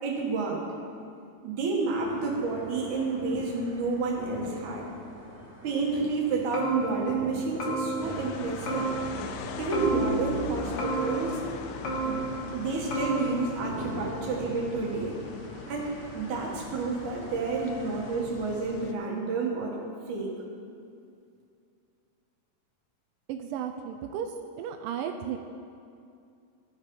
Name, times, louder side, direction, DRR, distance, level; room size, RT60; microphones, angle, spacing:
voice 1, 0.0-0.7 1.4-4.9 5.6-8.9 9.6-11.4 12.0-12.2 12.5-15.2 15.7-19.8 20.1-20.3, right 3 dB, 60° right, -1 dB, 2.5 m, -30 dB
sound 1, 2.0-18.2, right 1 dB, 30° right, 2.0 m, -44 dB
sound 2, 6.5-7.3 7.6-8.3 8.7-9.4 9.7-10.5 10.8-11.6 11.8-12.6 12.9-13.4, right 3 dB, 55° left, 1.6 m, -32 dB
sound 3, 8.0-18.9, left 6 dB, 80° left, 2.0 m, -41 dB
voice 2, 23.3-24.3 24.6-25.4, right 9 dB, 85° right, 5 dB, 1.9 m, -34 dB
15.0 x 5.1 x 5.4 m, 2.4 s
omnidirectional pair, 4.2 m